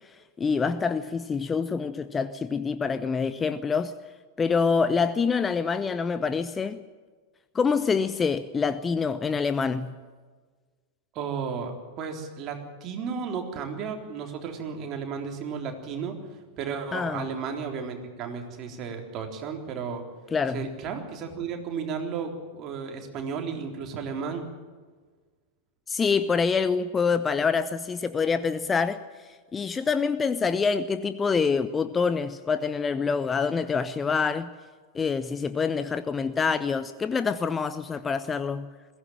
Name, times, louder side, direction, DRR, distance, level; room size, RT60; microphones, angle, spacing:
voice 1, 0.4-3.9 4.4-6.8 7.5-9.9 16.9-17.3 20.3-20.7 25.9-29.0 29.5-34.5 34.9-38.7, left 5 dB, 15° left, 13 dB, 0.8 m, -26 dB
voice 2, 11.1-11.7 12.0-16.2 16.6-20.0 20.5-24.5, right 6 dB, 35° right, 3 dB, 3.7 m, -33 dB
21.5 x 16.0 x 9.0 m, 1.5 s
figure-of-eight pair, 90°, 0 cm